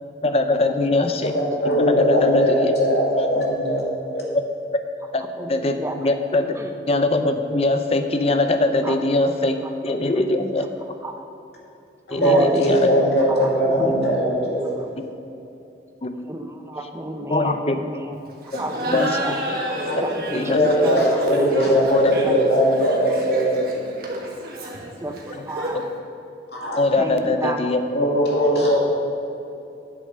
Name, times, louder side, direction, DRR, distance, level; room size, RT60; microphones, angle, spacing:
voice 1, 0.2-1.3 1.6-2.7 5.1-5.2 5.5-5.8 6.0-6.6 6.9-10.9 12.1-12.9 15.0-15.1 16.0-16.1 17.3-17.8 18.5-18.6 18.9-19.3 20.3-20.6 21.9-22.1 25.7-25.8 26.8-27.8, left 2 dB, 35° left, 8 dB, 0.6 m, -22 dB
voice 2, 1.6-3.8 4.1-4.2 12.2-14.8 19.7-20.0 20.5-23.6 26.5-26.8 27.9-28.8, equal, 65° left, -3 dB, 2.3 m, -19 dB
voice 3, 5.4-5.9 6.6-6.7 8.8-9.0 10.4-10.5 11.0-11.3 12.1-12.8 13.3-13.5 13.8-14.2 16.2-18.1 18.6-19.3 20.0-21.0 22.2-22.4 24.6-25.2 25.5-25.9 27.0-27.6, right 1 dB, 15° right, 4 dB, 0.6 m, -31 dB
Laughter, 18.5-25.9, equal, 55° right, 1.4 m, -30 dB
8.5 x 7.2 x 6.6 m, 2.8 s
head